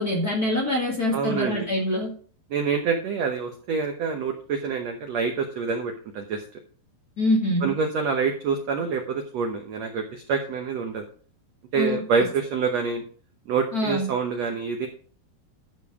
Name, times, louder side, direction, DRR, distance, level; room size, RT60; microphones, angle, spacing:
voice 1, 0.0-2.1 7.2-7.7 11.7-12.0 13.7-14.1, left 1 dB, 35° left, -1 dB, 1.6 m, -24 dB
voice 2, 1.1-1.7 2.5-6.4 7.6-11.0 11.7-13.0 13.5-14.9, right 5 dB, 75° right, 4 dB, 1.5 m, -26 dB
12.5 x 5.3 x 4.8 m, 0.43 s
omnidirectional pair, 4.5 m